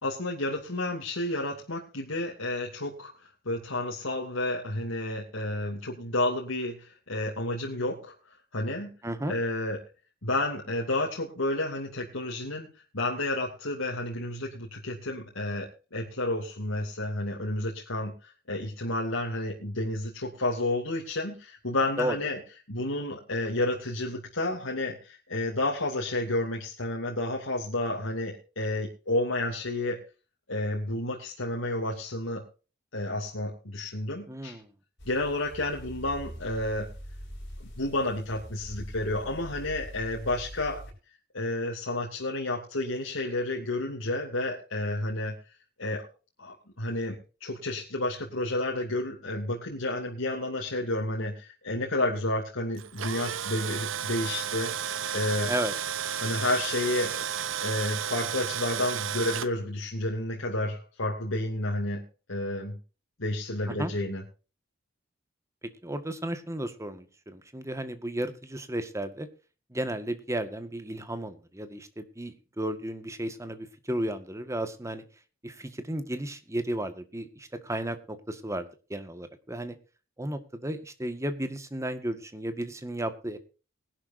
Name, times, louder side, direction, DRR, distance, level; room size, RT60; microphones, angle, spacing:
voice 1, 0.0-8.1 8.5-8.9 9.3-9.8 10.2-22.4 22.7-30.0 30.5-32.4 32.9-34.6 35.1-36.9 37.6-40.9 41.3-45.3 45.8-46.1 46.4-54.7 55.1-55.5 56.2-57.3 57.6-62.0 62.3-62.8 63.2-64.2, left 1 dB, 90° left, -1 dB, 2.7 m, -31 dB
voice 2, 9.0-9.4 22.0-22.2 34.3-34.7 55.5-55.7 63.7-63.9 65.6-69.3 69.7-75.0 75.4-79.8 80.2-83.4, right 1 dB, 15° right, 10 dB, 1.7 m, -34 dB
sound 1, 35.0-40.9, equal, 65° left, 6.6 m, -43 dB
Tools, 52.8-59.5, right 9 dB, 70° right, 0.8 m, -33 dB
21.0 x 11.5 x 2.7 m, 0.34 s
head